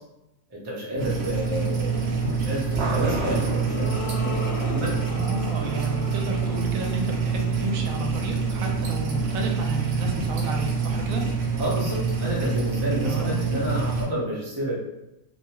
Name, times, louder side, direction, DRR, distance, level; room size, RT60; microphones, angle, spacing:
voice 1, 0.5-5.0 11.6-14.8, equal, 25° right, -5 dB, 0.5 m, -30 dB
sound 1, 1.0-14.0, right 5 dB, 60° right, 0.7 m, -26 dB
sound 2, 3.3-9.5, left 2 dB, 70° left, 1.0 m, -38 dB
voice 2, 5.1-11.2 13.1-13.4, right 2 dB, 85° right, 1 dB, 1.0 m, -32 dB
2.5 x 2.3 x 2.9 m, 0.92 s
omnidirectional pair, 1.4 m